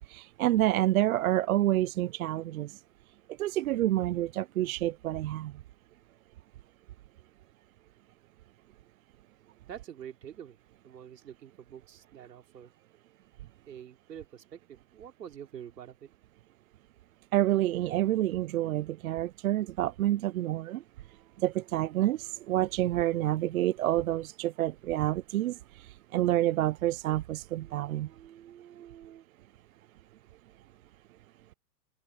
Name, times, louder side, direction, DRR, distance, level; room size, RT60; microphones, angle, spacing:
voice 1, 0.1-2.7 3.4-5.5 17.3-20.8 21.4-25.5 26.1-28.1, right 14 dB, 60° right, 0.5 m, -28 dB
voice 2, 9.7-10.6 10.8-12.7 13.7-16.1 21.0-21.5 21.9-23.6 26.5-26.6 27.5-29.3, right 9 dB, 85° right, 3.4 m, -48 dB
hypercardioid pair, 160°, 48 cm